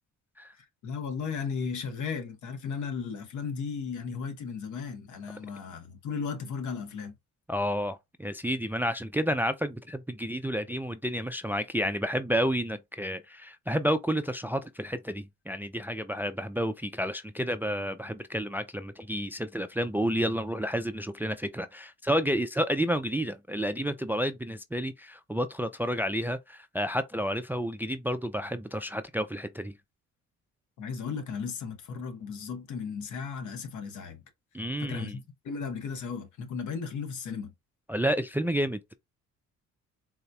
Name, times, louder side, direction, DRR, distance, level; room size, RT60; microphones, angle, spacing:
voice 1, 0.6-7.1 30.8-34.2 34.8-37.5, left 5 dB, 75° left, 1.2 m, -35 dB
voice 2, 7.5-29.7 34.5-35.2 37.9-39.0, equal, 5° right, 0.3 m, -30 dB
4.0 x 2.8 x 2.2 m
cardioid pair, 90°, 30 cm